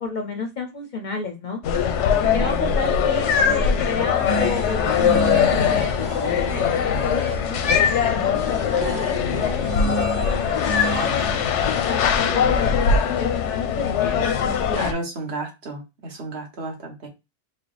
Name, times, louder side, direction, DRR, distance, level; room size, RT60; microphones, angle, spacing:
voice 1, 0.0-1.6 2.3-11.2 11.9-12.8 13.2-15.0, left 4 dB, 55° left, 4 dB, 0.6 m, -31 dB
sound 1, 1.6-14.9, left 7 dB, 90° left, 0.9 m, -21 dB
sound 2, 4.3-11.8, right 1 dB, 25° right, 0.9 m, -31 dB
voice 2, 14.8-17.1, right 2 dB, 65° right, 1 dB, 1.3 m, -32 dB
4.6 x 2.1 x 3.2 m, 0.25 s
omnidirectional pair, 1.2 m